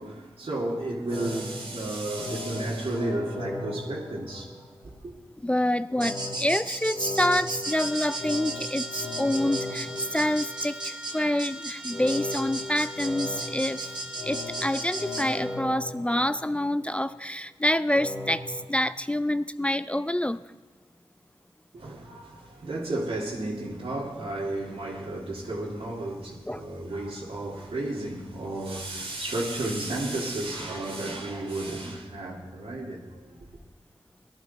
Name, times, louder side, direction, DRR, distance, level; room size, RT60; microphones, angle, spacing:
voice 1, 0.0-4.5 4.8-5.1 21.7-33.5, right 2 dB, 75° right, 2.1 m, -33 dB
sound 1, 1.1-4.9 5.9-11.0 11.9-16.9 17.9-18.6, left 2 dB, 50° left, 2.0 m, -37 dB
voice 2, 5.4-13.8 14.2-20.4 26.5-26.7, left 1 dB, 10° left, 0.4 m, -27 dB
sound 2, 6.0-15.2, right 2 dB, 45° right, 1.5 m, -35 dB
Trumpet, 7.6-15.7, equal, 10° right, 1.3 m, -43 dB
18.0 x 11.5 x 4.0 m
cardioid pair, 55°, 10 cm